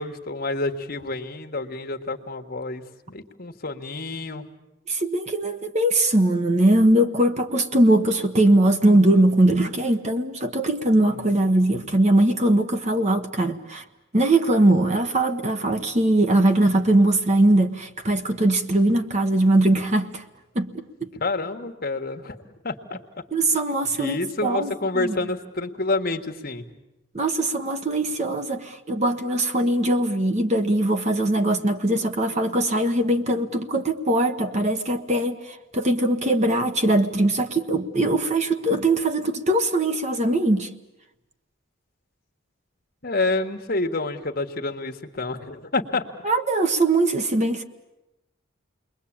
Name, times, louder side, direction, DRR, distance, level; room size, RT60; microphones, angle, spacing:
voice 1, 0.0-2.8 3.1-4.4 21.1-22.4 22.6-23.0 24.0-26.7 43.0-46.0, left 2 dB, 45° left, 4 dB, 1.6 m, -28 dB
voice 2, 4.9-13.8 14.1-20.2 20.5-20.8 23.3-25.1 27.1-40.7 46.2-47.6, right 1 dB, 35° right, 7 dB, 1.2 m, -21 dB
29.0 x 22.0 x 8.9 m, 0.95 s
head